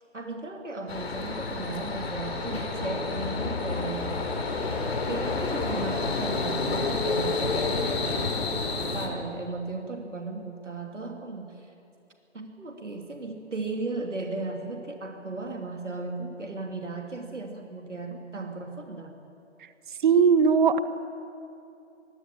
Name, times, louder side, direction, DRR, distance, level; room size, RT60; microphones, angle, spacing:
voice 1, 0.1-4.2 5.1-11.7 12.3-19.2, right 3 dB, 80° right, 3 dB, 3.1 m, -36 dB
sound 1, 0.9-9.1, left 3 dB, 55° left, 4.2 m, -29 dB
voice 2, 20.0-20.8, right 6 dB, 40° right, 12 dB, 1.5 m, -19 dB
24.5 x 23.5 x 8.9 m, 2.7 s
figure-of-eight pair, 140°, 36 cm